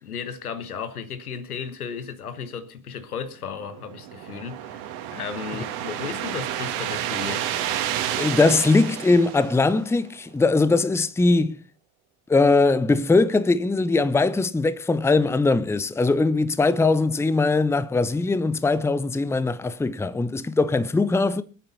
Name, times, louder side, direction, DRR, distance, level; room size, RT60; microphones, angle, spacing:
voice 1, 0.0-4.9 5.1-7.5, left 6 dB, 85° left, 1.5 m, -34 dB
sound 1, 3.6-10.1, right 11 dB, 60° right, 2.2 m, -30 dB
voice 2, 8.2-11.6 12.3-21.4, left 3 dB, 5° left, 0.7 m, -21 dB
24.0 x 8.8 x 4.2 m
figure-of-eight pair, 70°, 43 cm